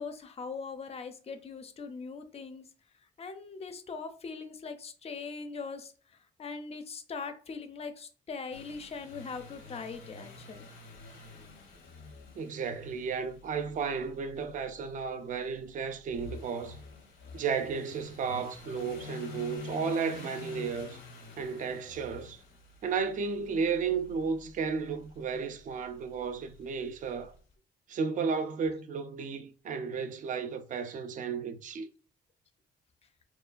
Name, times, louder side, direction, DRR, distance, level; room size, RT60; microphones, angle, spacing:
voice 1, 0.0-2.7 3.2-10.7, left 4 dB, 35° left, 0.4 m, -41 dB
sound 1, 8.5-27.4, left 4 dB, 90° left, 0.8 m, -48 dB
voice 2, 12.4-16.8 17.3-21.0 21.4-22.4 22.8-27.3 27.9-31.9, right 5 dB, 45° right, 0.4 m, -33 dB
2.8 x 2.2 x 2.4 m
cardioid pair, 120°, 19 cm